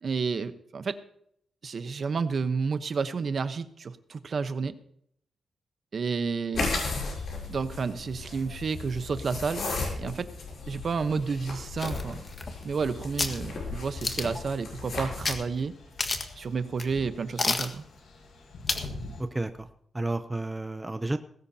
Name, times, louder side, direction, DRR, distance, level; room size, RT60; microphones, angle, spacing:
voice 1, 0.0-1.0 1.6-4.7 5.9-6.7 7.5-9.6 10.0-10.3 10.7-12.2 12.6-15.7 16.4-17.8, right 5 dB, 45° right, 11 dB, 1.0 m, -30 dB
sound 1, 6.5-15.4, left 3 dB, 60° left, 7.2 m, -35 dB
sound 2, 7.0-19.2, left 2 dB, 85° left, 6.1 m, -48 dB
sound 3, 11.8-12.8 13.2-13.4 14.0-14.4 15.2-15.4 15.7-15.8 16.0-16.4 16.8-16.9 17.4-17.7 18.7-18.9 19.3-19.4, left 3 dB, 30° left, 1.6 m, -30 dB
voice 2, 19.2-19.7 19.9-21.2, right 2 dB, 15° right, 9 dB, 0.7 m, -31 dB
19.0 x 16.0 x 2.8 m, 0.70 s
wide cardioid pair, 125°, 0 cm